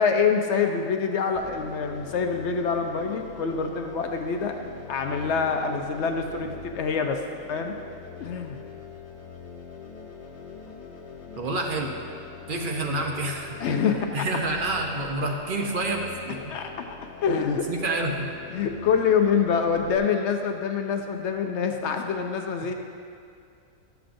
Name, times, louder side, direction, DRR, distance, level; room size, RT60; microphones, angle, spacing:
voice 1, 0.0-4.5 4.9-7.2 7.5-7.7 8.2-8.6 13.6-14.3 16.5-16.9 17.2-17.7 18.5-22.7, left 6 dB, 65° left, 4 dB, 0.7 m, -25 dB
sound 1, 1.3-20.0, left 5 dB, 50° left, 1.2 m, -43 dB
voice 2, 11.4-11.9 12.5-13.6 14.1-16.4 17.7-18.2, right 2 dB, 45° right, 1 dB, 0.8 m, -28 dB
12.5 x 6.9 x 2.6 m, 2.4 s
omnidirectional pair, 1.5 m